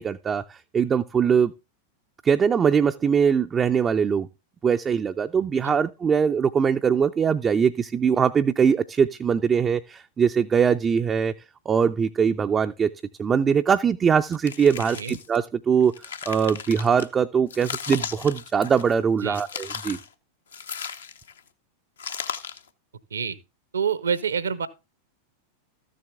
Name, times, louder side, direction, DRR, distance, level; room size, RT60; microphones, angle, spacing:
voice 1, 0.0-1.5 2.2-4.3 4.6-11.3 11.7-12.9 13.2-15.9 16.3-20.0, right 7 dB, 20° right, 0.4 m, -22 dB
sound 1, 14.3-15.4 15.8-17.1 17.5-19.0 19.3-20.1 20.5-21.4 22.0-22.7, left 6 dB, 70° left, 0.8 m, -36 dB
voice 2, 23.7-24.7, right 6 dB, 70° right, 0.8 m, -26 dB
13.5 x 7.5 x 3.5 m
figure-of-eight pair, 90°, 0 cm